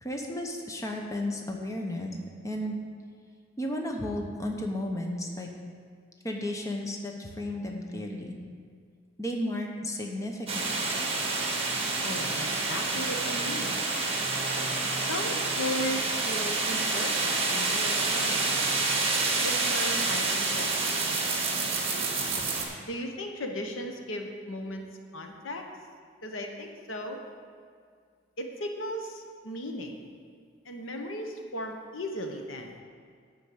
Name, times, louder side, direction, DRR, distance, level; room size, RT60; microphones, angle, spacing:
voice 1, 0.0-2.2 2.4-2.9 3.6-5.5 6.2-8.3 9.2-10.7, left 1 dB, 15° left, 1 dB, 0.9 m, -33 dB
sound 1, 10.5-22.6, right 3 dB, 30° right, 1.5 m, -28 dB
voice 2, 12.0-13.9 15.0-18.4 19.4-21.2 22.9-24.8 25.1-25.6 26.2-27.2 28.4-30.0 30.6-32.7, left 1 dB, 85° left, 4 dB, 1.1 m, -36 dB
12.0 x 4.6 x 8.4 m, 2.1 s
head